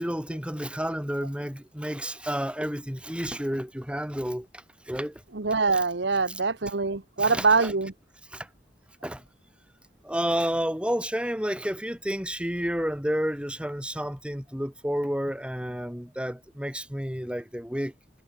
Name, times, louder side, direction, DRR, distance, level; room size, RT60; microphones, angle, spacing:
voice 1, 0.0-4.5 4.9-5.2 7.2-7.7 8.3-8.5 9.0-9.2 10.0-17.9, equal, 5° right, 3.3 m, -30 dB
voice 2, 5.3-7.9, right 4 dB, 70° right, 1.1 m, -24 dB
head